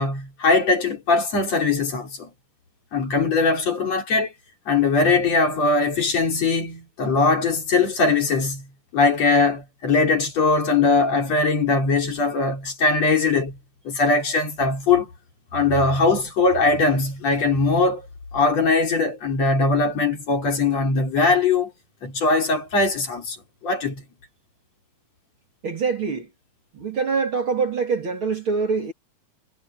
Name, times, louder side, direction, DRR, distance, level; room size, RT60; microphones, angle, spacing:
voice 1, 0.0-2.3 2.9-4.3 4.7-8.7 8.9-13.6 13.9-15.1 15.5-18.1 18.3-21.7 22.0-23.4 23.6-24.0, left 3 dB, 55° left, 5.4 m, -20 dB
voice 2, 25.6-26.3 26.7-28.9, right 5 dB, 45° right, 2.7 m, -24 dB
omnidirectional pair, 3.6 m